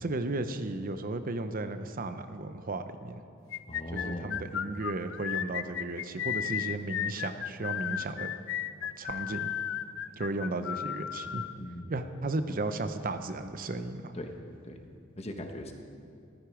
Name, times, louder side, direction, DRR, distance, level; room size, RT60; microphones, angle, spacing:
voice 1, 0.0-3.2 3.9-8.3 9.0-9.5 10.2-11.4 11.9-14.1, right 2 dB, 40° right, 9 dB, 0.7 m, -34 dB
sound 1, 3.5-11.5, left 10 dB, 65° left, 0.5 m, -34 dB
voice 2, 3.7-4.4 11.6-11.9 14.1-14.4 14.7-14.8 15.2-15.7, left 1 dB, 30° left, 4 dB, 1.3 m, -39 dB
14.5 x 14.0 x 5.0 m, 2.4 s
head